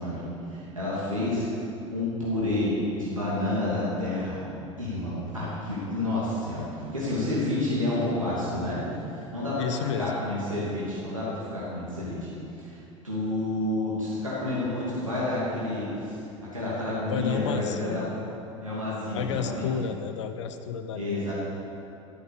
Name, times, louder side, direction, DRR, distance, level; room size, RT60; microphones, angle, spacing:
voice 1, 0.0-1.5 1.9-4.4 4.8-8.8 9.1-12.3 12.6-12.8 13.0-18.1 18.6-19.7 20.9-21.3, left 1 dB, 85° right, -8 dB, 2.7 m, -29 dB
voice 2, 9.6-10.1 17.1-18.0 19.1-21.3, left 7 dB, 65° left, 9 dB, 0.9 m, -31 dB
13.0 x 8.6 x 6.8 m, 2.8 s
figure-of-eight pair, 70°, 17 cm